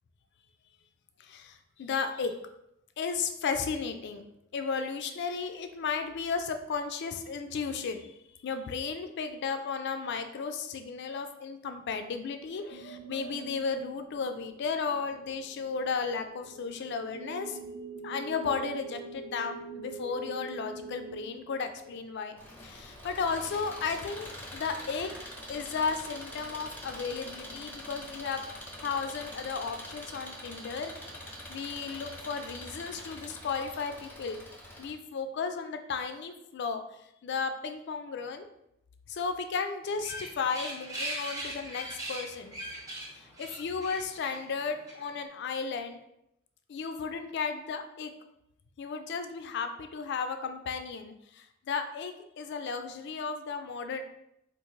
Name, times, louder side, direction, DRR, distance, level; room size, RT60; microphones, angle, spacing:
voice 1, 1.2-2.3 3.0-4.2 4.5-17.6 18.0-25.1 25.5-28.4 28.7-30.9 31.5-34.4 34.8-36.8 37.2-38.5 39.1-42.6 43.1-46.0 46.7-48.1 48.8-54.0, left 5 dB, 60° left, 7 dB, 0.4 m, -34 dB
sound 1, 12.7-22.5, right 4 dB, 80° right, 0.4 m, -45 dB
Engine, 22.4-34.9, left 1 dB, 10° left, 0.6 m, -44 dB
sound 2, 39.8-45.2, right 1 dB, 15° right, 0.8 m, -40 dB
3.6 x 2.5 x 3.1 m, 0.80 s
head